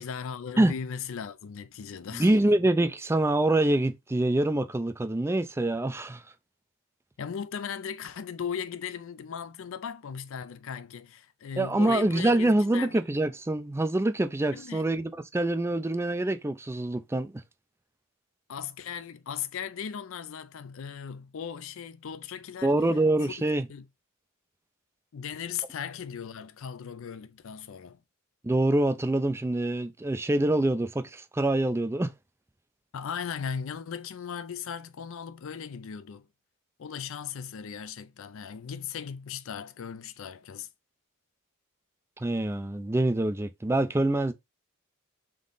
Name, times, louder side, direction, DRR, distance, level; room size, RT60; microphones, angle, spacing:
voice 1, 0.0-2.3 7.2-13.0 14.5-14.9 18.5-22.7 23.2-23.3 23.7-23.9 25.1-28.0 32.9-36.3 36.8-40.7, left 7 dB, 60° left, 0.4 m, -37 dB
voice 2, 2.1-6.2 11.6-17.3 22.6-23.7 28.4-32.1 42.2-44.3, right 1 dB, 10° right, 0.3 m, -25 dB
3.7 x 3.7 x 3.8 m
head